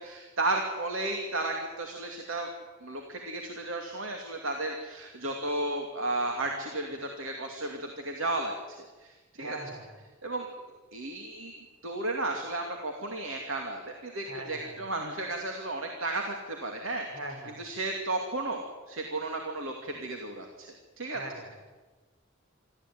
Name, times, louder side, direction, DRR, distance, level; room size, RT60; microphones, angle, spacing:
voice 1, 0.0-2.5 2.8-9.6 10.2-10.5 10.9-17.1 17.6-20.7 21.0-21.2, right 2 dB, 85° right, 2 dB, 2.5 m, -33 dB
voice 2, 9.4-10.0 14.2-14.8 17.1-17.6 21.1-21.6, right 1 dB, 70° right, 2 dB, 6.4 m, -42 dB
25.5 x 14.0 x 9.4 m, 1.3 s
head